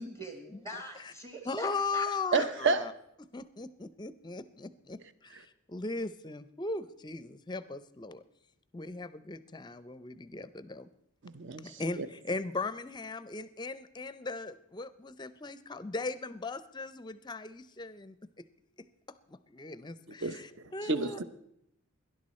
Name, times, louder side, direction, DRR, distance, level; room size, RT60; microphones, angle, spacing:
voice 1, 0.0-2.1 2.3-2.5, equal, 20° right, 4 dB, 1.2 m, -42 dB
voice 2, 1.5-2.9 3.2-8.2 8.7-10.9 11.6-18.4 19.3-21.2, left 3 dB, 20° left, 15 dB, 0.5 m, -38 dB
voice 3, 2.3-2.8 11.2-12.1 20.2-20.4 20.8-21.2, right 4 dB, 55° right, 12 dB, 0.8 m, -30 dB
18.0 x 11.0 x 4.3 m, 0.78 s
head